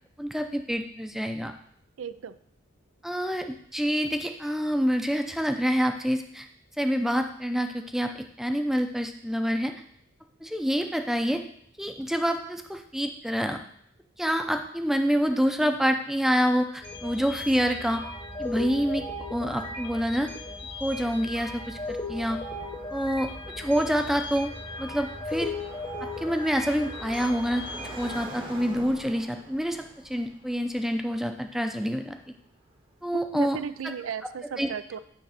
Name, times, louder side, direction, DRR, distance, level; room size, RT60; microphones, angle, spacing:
voice 1, 0.2-1.5 3.0-6.5 6.8-8.1 8.4-9.7 10.4-11.4 11.8-13.6 14.2-18.0 18.4-19.0 19.3-20.3 20.8-22.4 22.9-23.3 23.6-24.5 24.8-25.5 26.2-27.6 28.0-29.8 30.1-32.2 33.0-33.6 34.6-34.7, equal, ahead, 5 dB, 0.5 m, -27 dB
voice 2, 2.0-2.3 33.1-35.0, right 7 dB, 90° right, 14 dB, 0.4 m, -35 dB
sound 1, 16.8-28.2, left 2 dB, 25° left, 1.0 m, -37 dB
Car passing by, 20.8-32.8, right 2 dB, 25° right, 0.9 m, -47 dB
9.2 x 3.2 x 5.7 m, 0.65 s
head